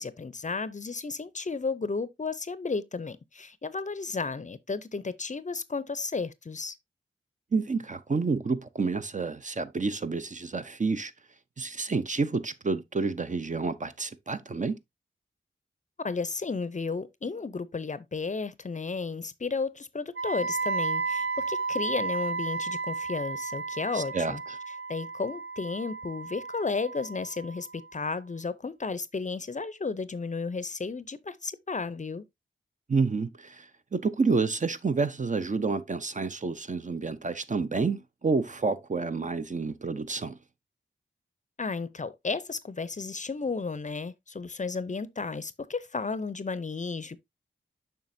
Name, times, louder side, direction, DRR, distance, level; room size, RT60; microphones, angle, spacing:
voice 1, 0.0-6.8 16.0-24.4 24.9-32.2 41.6-47.2, left 4 dB, 35° left, 0.5 m, -33 dB
voice 2, 7.5-11.1 11.6-14.8 23.9-24.6 32.9-40.4, right 4 dB, 40° right, 0.6 m, -29 dB
Wind instrument woodwind instrument, 20.2-28.1, right 4 dB, 80° right, 1.2 m, -33 dB
7.4 x 5.6 x 2.6 m
wide cardioid pair, 85°, 21 cm